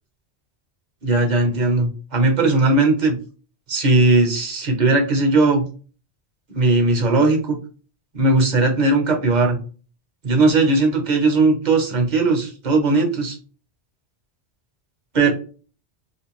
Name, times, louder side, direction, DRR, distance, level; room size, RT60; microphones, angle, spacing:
voice 1, 1.0-3.1 3.7-5.6 6.5-7.6 8.1-9.6 10.2-13.4 15.1-15.3, right 3 dB, 45° right, 2 dB, 0.8 m, -18 dB
2.5 x 2.2 x 3.0 m, 0.38 s
omnidirectional pair, 1.1 m